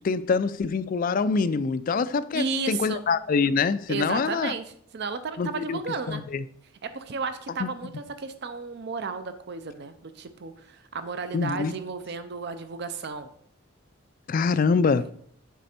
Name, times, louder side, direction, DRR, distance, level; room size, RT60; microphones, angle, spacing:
voice 1, 0.0-4.5 5.4-5.8 6.1-6.4 7.6-7.7 11.3-11.7 14.3-15.1, left 4 dB, 45° left, 0.3 m, -25 dB
voice 2, 2.3-3.0 3.9-6.2 6.8-13.3, right 4 dB, 55° right, 0.5 m, -33 dB
8.2 x 5.2 x 4.3 m
head